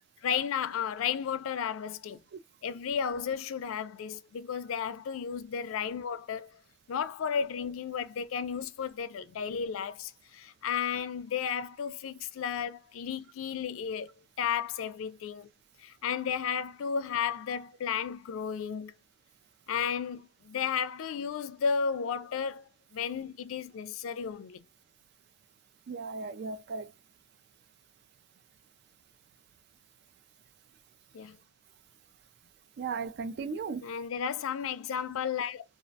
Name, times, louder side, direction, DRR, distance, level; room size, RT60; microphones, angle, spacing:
voice 1, 0.2-2.2 2.6-6.6 6.9-14.1 14.4-15.5 15.8-18.9 19.7-24.6 31.1-31.4 33.8-35.6, left 7 dB, 85° left, 0.3 m, -33 dB
voice 2, 25.9-26.9 32.8-33.9, right 4 dB, 55° right, 0.3 m, -36 dB
2.4 x 2.0 x 2.6 m
head